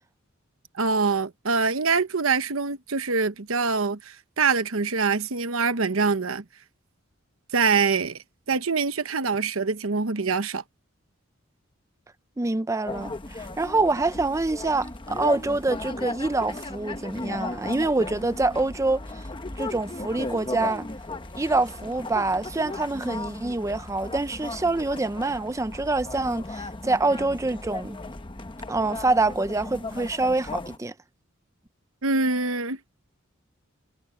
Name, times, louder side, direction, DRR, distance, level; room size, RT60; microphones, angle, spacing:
voice 1, 0.8-6.4 7.5-8.2 8.5-10.6 32.0-32.8, right 4 dB, 80° right, 1.0 m, -24 dB
voice 2, 12.4-19.3 19.6-20.9 21.4-28.0 28.7-30.9, right 2 dB, 15° right, 0.5 m, -26 dB
sound 1, 12.9-30.8, left 2 dB, 25° left, 1.0 m, -36 dB
head